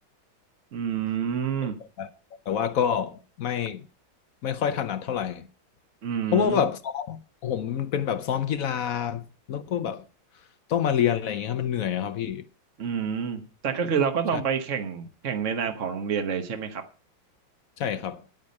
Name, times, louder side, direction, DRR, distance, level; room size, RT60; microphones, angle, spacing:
voice 1, 0.7-1.8 6.0-6.7 12.8-16.8, right 7 dB, 45° right, 1.2 m, -28 dB
voice 2, 2.5-3.8 4.4-5.5 6.3-9.2 9.5-10.0 10.7-12.4 14.3-14.4 17.8-18.2, left 8 dB, 65° left, 0.8 m, -27 dB
10.5 x 9.4 x 5.3 m
omnidirectional pair, 2.3 m